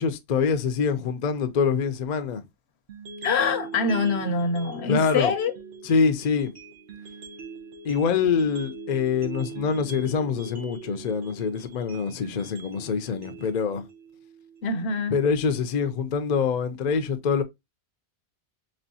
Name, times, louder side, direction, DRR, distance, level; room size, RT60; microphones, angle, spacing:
voice 1, 0.0-2.4 4.9-5.3 5.8-6.5 7.8-13.8 15.1-17.4, left 5 dB, 50° left, 0.6 m, -25 dB
sound 1, 2.9-14.9, right 4 dB, 80° right, 1.1 m, -41 dB
voice 2, 3.2-5.5 14.6-15.2, left 4 dB, 75° left, 1.0 m, -24 dB
4.3 x 3.0 x 2.7 m
omnidirectional pair, 1.1 m